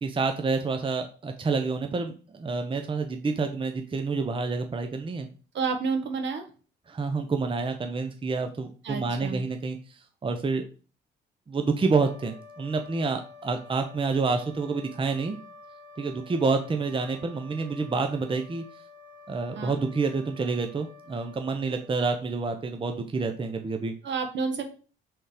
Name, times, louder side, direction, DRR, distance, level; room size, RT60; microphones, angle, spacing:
voice 1, 0.0-5.3 6.9-10.6 11.5-15.4 16.0-18.6 19.3-23.9, right 4 dB, 25° right, 5 dB, 0.7 m, -28 dB
voice 2, 5.5-6.4 8.8-9.4 19.5-19.8 24.0-24.6, right 5 dB, 65° right, 5 dB, 1.4 m, -30 dB
sound 1, 11.9-22.5, left 3 dB, 20° left, 1.9 m, -50 dB
5.3 x 3.7 x 4.9 m, 0.37 s
cardioid pair, 90°, 20 cm